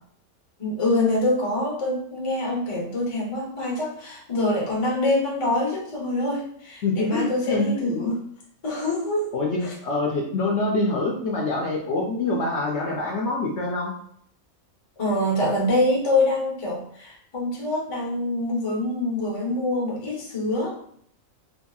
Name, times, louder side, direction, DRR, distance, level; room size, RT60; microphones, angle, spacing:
voice 1, 0.6-8.2 8.6-9.3 9.6-9.7 15.0-20.7, left 1 dB, 30° left, -2 dB, 0.6 m, -25 dB
voice 2, 6.8-8.0 9.3-13.9, left 2 dB, 65° left, -2 dB, 0.8 m, -25 dB
2.8 x 2.7 x 2.3 m, 0.65 s
omnidirectional pair, 1.4 m